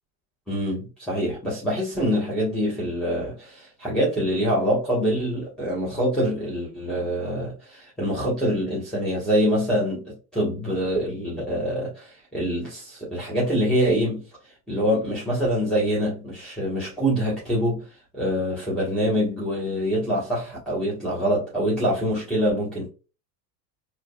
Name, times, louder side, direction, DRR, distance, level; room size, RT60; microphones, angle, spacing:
voice 1, 0.5-14.2 14.7-17.8 18.1-22.9, equal, ahead, 1.5 m, -25 dB
3.8 x 2.2 x 2.4 m
hypercardioid pair, 85°, 49 cm